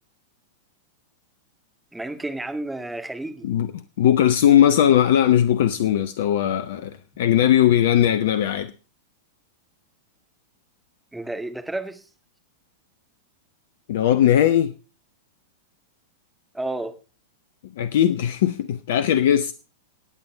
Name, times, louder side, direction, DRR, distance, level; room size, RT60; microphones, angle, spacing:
voice 1, 1.9-3.5 11.1-12.0 16.5-17.0, right 2 dB, 5° right, 1.6 m, -31 dB
voice 2, 3.4-8.7 13.9-14.7 17.8-19.5, left 10 dB, 55° left, 0.7 m, -19 dB
24.5 x 8.7 x 3.3 m
figure-of-eight pair, 95°, 0 cm